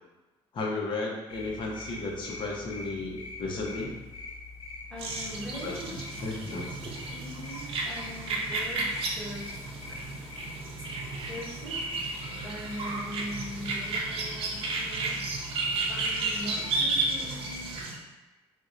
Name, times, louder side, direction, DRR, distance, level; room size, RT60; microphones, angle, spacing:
voice 1, 0.5-4.0 5.6-6.9, left 2 dB, 50° left, -2 dB, 0.7 m, -34 dB
sound 1, 1.3-17.8, left 3 dB, 80° left, 0.7 m, -44 dB
voice 2, 4.9-5.9 7.1-9.5 9.9-10.1 11.2-11.8 12.4-15.2 15.9-17.7, equal, 5° left, -7 dB, 1.0 m, -41 dB
sound 2, 5.0-17.9, right 3 dB, 60° right, 0.5 m, -33 dB
4.3 x 2.1 x 2.6 m, 1.1 s
cardioid pair, 120°, 11 cm